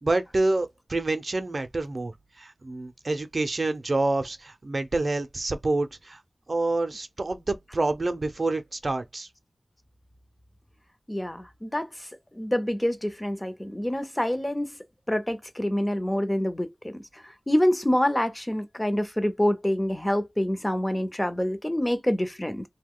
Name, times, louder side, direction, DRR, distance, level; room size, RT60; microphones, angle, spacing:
voice 1, 0.0-6.2 6.5-9.3, right 2 dB, 55° right, 0.5 m, -27 dB
voice 2, 11.1-11.9 12.3-14.8 15.1-16.9 17.5-22.6, left 1 dB, 20° left, 0.7 m, -26 dB
2.7 x 2.2 x 3.6 m
wide cardioid pair, 50°, 0 cm